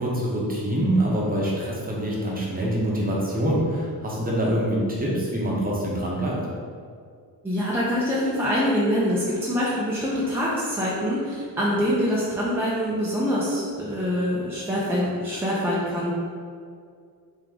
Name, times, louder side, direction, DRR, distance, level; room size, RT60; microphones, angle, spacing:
voice 1, 0.0-6.4, right 1 dB, 20° right, -4 dB, 0.9 m, -25 dB
voice 2, 7.4-16.1, equal, 5° right, -8 dB, 0.6 m, -25 dB
3.5 x 3.1 x 3.7 m, 2.2 s
cardioid pair, 130°, 39 cm